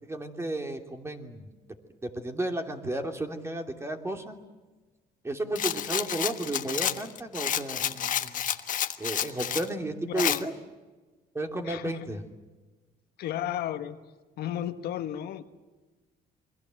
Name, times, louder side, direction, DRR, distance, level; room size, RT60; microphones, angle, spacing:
voice 1, 0.0-1.5 2.0-4.4 5.2-8.5 9.0-10.5 11.3-12.2, right 1 dB, 15° right, 4 dB, 3.0 m, -33 dB
Rattle, 5.6-9.7 10.2-10.4, left 9 dB, 50° left, 1.3 m, -30 dB
voice 2, 10.1-10.4 11.6-12.0 13.2-14.0 14.4-15.4, left 11 dB, 70° left, 8 dB, 1.5 m, -33 dB
28.0 x 23.0 x 7.8 m, 1.2 s
cardioid pair, 110°, 17 cm